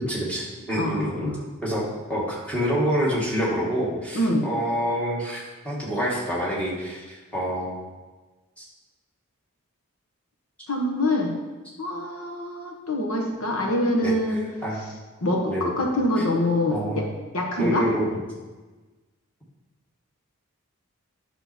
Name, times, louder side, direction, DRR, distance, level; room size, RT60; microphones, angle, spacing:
voice 1, 0.0-1.3 1.6-7.8 8.6-8.7 14.0-14.1 14.6-14.8 15.5-15.7 16.7-17.0 17.6-18.2, equal, 5° left, -6 dB, 2.0 m, -27 dB
voice 2, 0.7-1.4 4.1-4.5 10.7-11.4 11.8-14.5 15.2-17.1 17.3-17.9, left 1 dB, 80° left, 0 dB, 1.4 m, -25 dB
9.4 x 6.6 x 4.5 m, 1.2 s
head